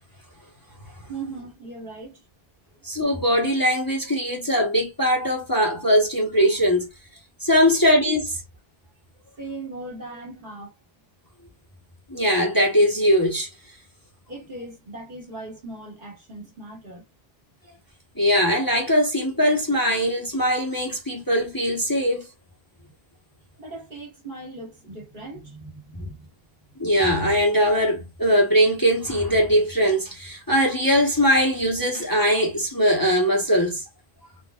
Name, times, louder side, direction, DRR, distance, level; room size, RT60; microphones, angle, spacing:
voice 1, 1.1-2.2 7.5-7.8 8.2-8.3 9.4-10.7 14.3-17.0 23.6-26.3, right 2 dB, 55° right, 1.8 m, -38 dB
voice 2, 2.8-6.9 7.4-8.4 12.1-13.5 18.2-22.2 25.9-26.1 26.8-33.8, equal, 20° left, 1.1 m, -21 dB
3.9 x 3.1 x 2.3 m
omnidirectional pair, 1.1 m